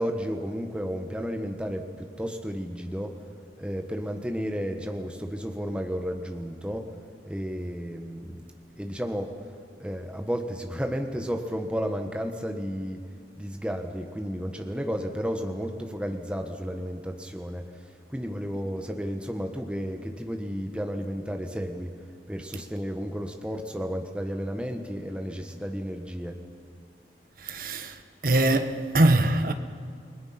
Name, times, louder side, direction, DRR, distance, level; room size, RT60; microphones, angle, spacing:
voice 1, 0.0-3.2 3.6-6.9 7.2-8.5 8.8-9.4 9.8-13.0 13.4-17.7 18.1-22.0 22.3-26.4, equal, 5° right, 1.3 m, -32 dB
voice 2, 27.4-27.9 28.2-29.5, right 2 dB, 50° right, 1.3 m, -22 dB
29.5 x 20.0 x 5.8 m
head